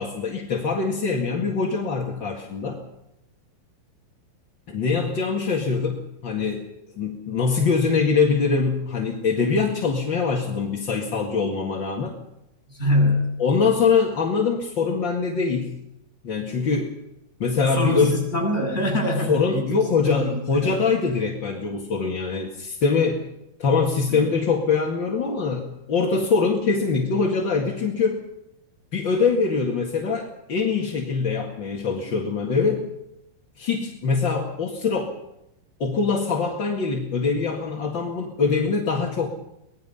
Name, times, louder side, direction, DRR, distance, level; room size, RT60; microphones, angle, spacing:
voice 1, 0.0-2.8 4.7-6.6 6.9-12.1 13.4-15.7 16.2-16.9 17.4-18.2 19.3-23.2 23.6-28.2 28.9-32.8 33.6-35.1 35.8-39.3, left 5 dB, 40° left, -1 dB, 2.1 m, -23 dB
voice 2, 12.7-13.3 17.7-20.7 24.1-24.2, left 1 dB, 15° left, -1 dB, 7.8 m, -24 dB
24.5 x 20.0 x 5.7 m, 0.86 s
omnidirectional pair, 4.5 m